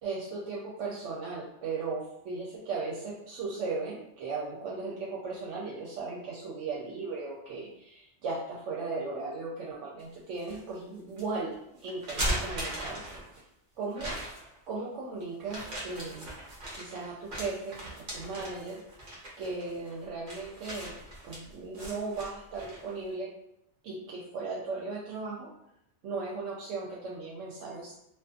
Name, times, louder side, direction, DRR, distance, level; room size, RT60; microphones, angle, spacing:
voice 1, 0.0-13.2 13.8-16.3 16.7-18.8 19.4-21.0 21.2-23.3 23.8-25.5 26.0-27.9, right 3 dB, 80° right, -4 dB, 0.9 m, -37 dB
sound 1, 10.0-10.6 11.2-11.3 11.9-13.4 14.0-14.6 15.4-22.9, right 1 dB, 50° right, 0.9 m, -38 dB
2.5 x 2.3 x 2.4 m, 0.79 s
omnidirectional pair, 1.2 m